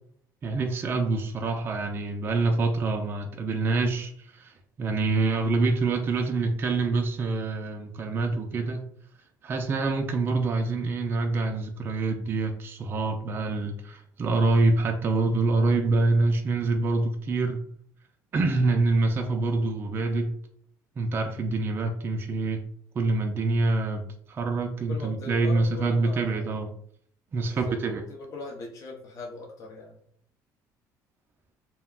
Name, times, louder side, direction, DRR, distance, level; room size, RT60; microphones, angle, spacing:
voice 1, 0.4-8.8 9.4-17.6 18.3-20.4 21.0-22.6 22.9-24.0 24.3-26.7 27.3-28.0, right 3 dB, 30° right, 4 dB, 0.3 m, -26 dB
voice 2, 24.9-26.5 27.5-30.0, left 2 dB, 50° left, -1 dB, 0.6 m, -40 dB
2.2 x 2.1 x 3.5 m, 0.63 s
cardioid pair, 130°, 7 cm